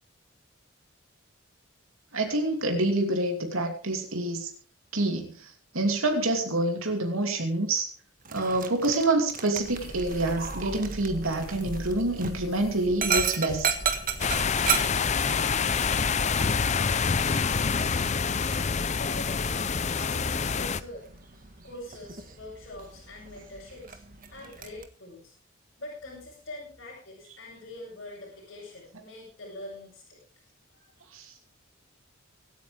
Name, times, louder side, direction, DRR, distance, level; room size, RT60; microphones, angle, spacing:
voice 1, 2.1-4.5 4.9-7.9 8.3-13.7 31.1-31.3, right 2 dB, 90° right, 3 dB, 2.7 m, -27 dB
Dog, 8.2-24.8, right 7 dB, 40° right, 1.5 m, -35 dB
sound 1, 9.6-17.9, equal, 20° left, 2.6 m, -42 dB
sound 2, 14.2-20.8, left 5 dB, 35° left, 0.6 m, -26 dB
voice 2, 18.9-19.7 20.0-24.0 24.3-25.3 25.8-30.2 30.7-30.9, left 1 dB, 55° left, -6 dB, 6.4 m, -44 dB
24.5 x 9.4 x 3.5 m, 0.41 s
head